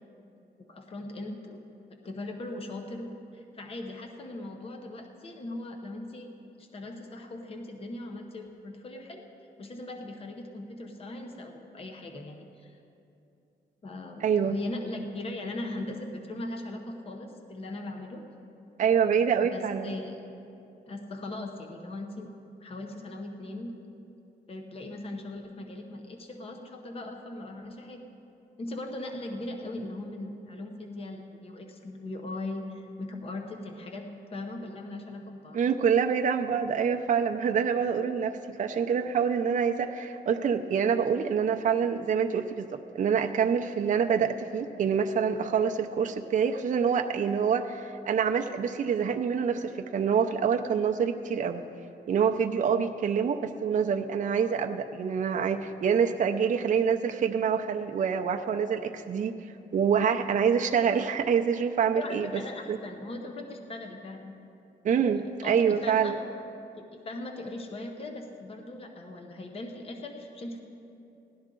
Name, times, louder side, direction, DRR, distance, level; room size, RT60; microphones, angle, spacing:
voice 1, 0.6-1.6 2.0-6.3 6.6-9.2 9.6-12.8 13.8-18.2 19.4-20.1 20.9-22.3 22.6-24.0 24.5-28.0 28.6-35.6 61.9-64.3 65.0-66.3 66.9-70.6, left 2 dB, 35° left, 3 dB, 0.8 m, -39 dB
voice 2, 14.2-14.6 18.8-19.9 35.5-51.6 52.1-59.4 59.7-62.3 62.7-62.8 64.8-66.2, right 7 dB, 45° right, 4 dB, 0.5 m, -26 dB
17.0 x 12.0 x 3.8 m, 2.7 s
wide cardioid pair, 170°, 18 cm